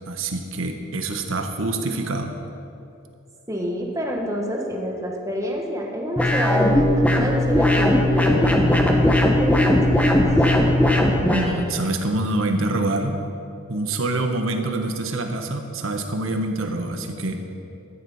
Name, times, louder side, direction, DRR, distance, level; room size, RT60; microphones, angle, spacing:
voice 1, 0.1-2.3 11.3-13.2 13.7-17.5, right 2 dB, 75° right, 5 dB, 1.3 m, -25 dB
voice 2, 3.5-10.2, equal, 15° right, 0 dB, 1.4 m, -28 dB
sound 1, 6.2-11.5, left 1 dB, 5° left, 1.0 m, -18 dB
13.0 x 10.5 x 5.7 m, 2.7 s
head